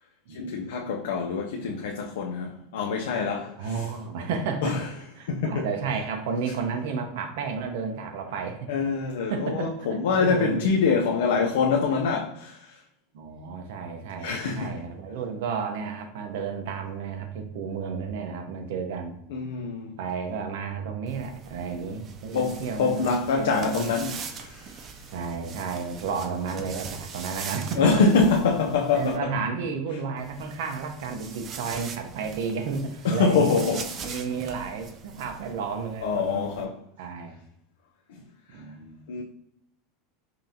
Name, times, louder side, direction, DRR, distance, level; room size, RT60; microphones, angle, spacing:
voice 1, 0.3-3.9 4.6-4.9 5.3-5.7 8.7-12.8 14.2-14.8 19.3-20.0 22.3-24.9 27.8-29.4 33.0-34.2 36.0-36.8 38.1-38.2 38.5-38.6 39.1-39.2, left 5 dB, 90° left, 0.4 m, -25 dB
voice 2, 3.6-4.8 5.2-8.7 9.3-9.7 10.2-10.7 13.1-19.2 20.0-23.9 25.1-27.9 28.9-33.5 34.0-36.5 37.0-37.3 38.5-39.0, right 5 dB, 75° right, 0.7 m, -32 dB
sound 1, 21.1-29.2 30.2-36.6, right 5 dB, 35° right, 0.4 m, -42 dB
5.3 x 2.7 x 2.7 m
supercardioid pair, 130°, 0 cm